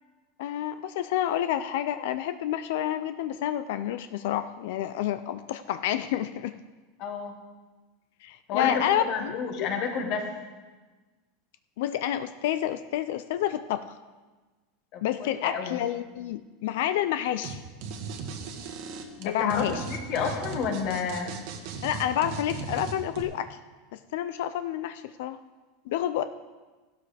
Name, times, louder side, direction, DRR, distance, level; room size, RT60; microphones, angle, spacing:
voice 1, 0.4-6.6 8.2-9.7 11.8-14.0 15.0-17.6 19.2-19.8 21.8-23.6 23.9-25.4 25.9-26.2, left 11 dB, 65° left, 11 dB, 0.5 m, -29 dB
voice 2, 7.0-7.3 8.5-10.3 14.9-15.8 19.2-21.4, left 6 dB, 40° left, 4 dB, 1.7 m, -30 dB
sound 1, 17.4-17.5 17.8-23.2, right 5 dB, 50° right, 1.3 m, -37 dB
15.0 x 12.5 x 3.4 m, 1.3 s
supercardioid pair, 170°, 0 cm